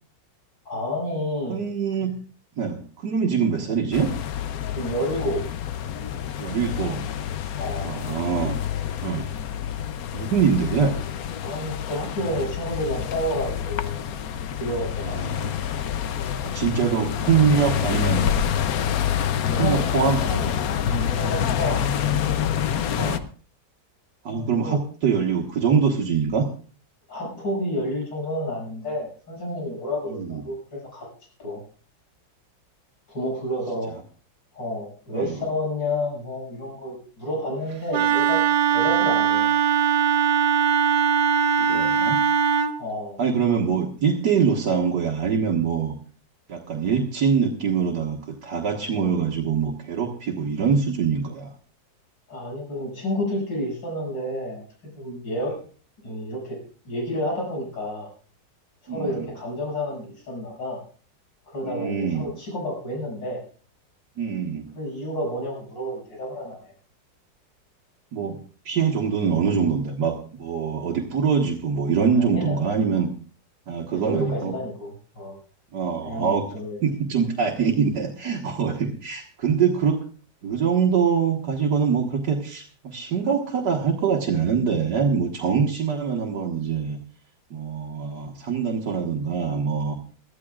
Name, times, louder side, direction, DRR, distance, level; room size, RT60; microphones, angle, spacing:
voice 1, 0.7-1.7 2.0-2.1 4.7-5.4 7.6-7.9 11.4-14.2 14.6-15.4 19.5-20.6 20.9-21.9 22.9-23.2 24.3-24.8 27.1-31.1 31.4-31.6 33.1-33.9 34.5-38.4 38.7-39.5 42.8-43.2 52.3-54.6 55.0-55.6 56.0-56.6 56.9-58.1 58.8-60.8 61.5-63.4 64.8-66.7 72.2-72.7 73.9-75.3 76.0-76.8, left 1 dB, 80° left, -2 dB, 7.3 m, -30 dB
voice 2, 1.5-2.1 2.6-4.1 6.4-7.0 7.8-8.6 9.0-9.3 10.1-10.9 15.1-15.6 16.4-18.3 19.6-20.2 23.0-23.3 24.3-26.5 30.1-30.4 35.1-35.4 41.6-42.2 43.2-46.0 46.5-51.5 58.9-59.3 61.6-62.3 64.2-64.7 68.1-68.4 68.6-73.1 73.7-74.5 75.7-76.5 76.8-80.0 80.4-87.0 87.5-90.0, right 6 dB, 65° right, -1 dB, 1.9 m, -24 dB
sound 1, 3.9-23.2, left 9 dB, 60° left, 1.1 m, -27 dB
Wind instrument woodwind instrument, 37.9-42.8, right 7 dB, 85° right, 1.5 m, -20 dB
22.5 x 14.0 x 2.4 m, 0.41 s
omnidirectional pair, 2.0 m